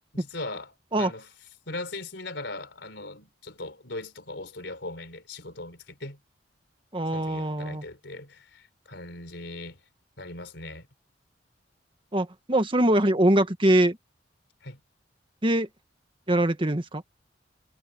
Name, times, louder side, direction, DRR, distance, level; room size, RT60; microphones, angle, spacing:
voice 1, 0.1-1.3 1.7-6.2 7.1-9.8 10.2-10.9 14.6-14.8, left 2 dB, 70° left, 4.5 m, -39 dB
voice 2, 6.9-7.8 12.1-14.0 15.4-15.7 16.3-17.0, right 1 dB, 30° right, 1.6 m, -23 dB
head